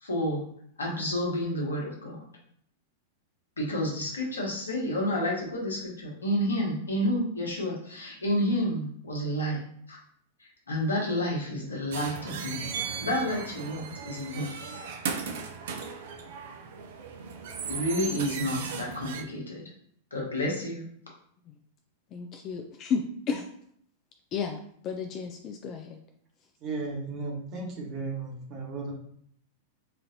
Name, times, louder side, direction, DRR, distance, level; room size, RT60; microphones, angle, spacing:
voice 1, 0.0-0.4 0.8-2.3 3.6-10.0 10.4-12.7 13.0-14.5 17.7-19.6 20.1-20.8, equal, 85° left, -2 dB, 1.1 m, -30 dB
sound 1, 11.9-19.2, right 6 dB, 65° right, 0.5 m, -37 dB
voice 2, 22.1-23.4 24.3-24.6 24.8-26.0, left 5 dB, 40° left, 5 dB, 0.3 m, -32 dB
voice 3, 26.6-28.9, right 3 dB, 40° right, -1 dB, 1.2 m, -35 dB
4.2 x 2.6 x 2.7 m, 0.65 s
hypercardioid pair, 100°, 0 cm